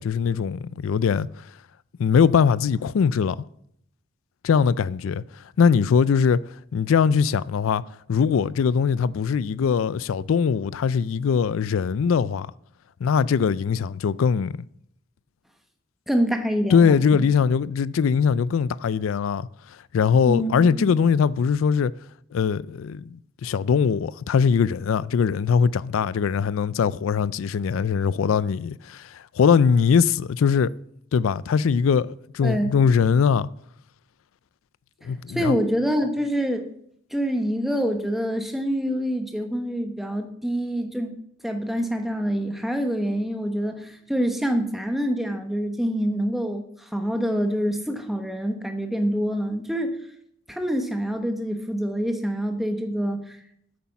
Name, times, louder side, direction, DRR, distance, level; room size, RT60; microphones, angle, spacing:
voice 1, 0.0-1.5 2.0-3.4 4.4-6.4 6.7-7.8 8.1-12.5 13.0-14.7 16.7-21.9 22.3-23.1 23.4-30.7 31.1-33.5 35.0-35.6, left 6 dB, 80° left, 0.4 m, -21 dB
voice 2, 16.1-17.2 20.2-20.9 32.4-32.8 35.3-36.7 37.1-41.1 41.4-50.0 50.5-53.4, equal, ahead, 1.1 m, -26 dB
9.4 x 8.5 x 5.8 m
head